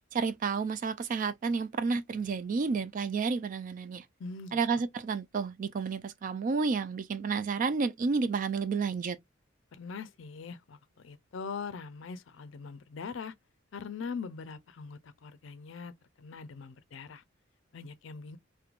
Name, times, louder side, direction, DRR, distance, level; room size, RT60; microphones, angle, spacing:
voice 1, 0.1-4.0 4.5-9.2, right 4 dB, 40° right, 0.3 m, -31 dB
voice 2, 4.2-4.6 9.7-10.8 11.0-13.3 13.7-17.2 17.7-18.4, left 5 dB, 65° left, 0.4 m, -42 dB
3.0 x 2.1 x 2.4 m
head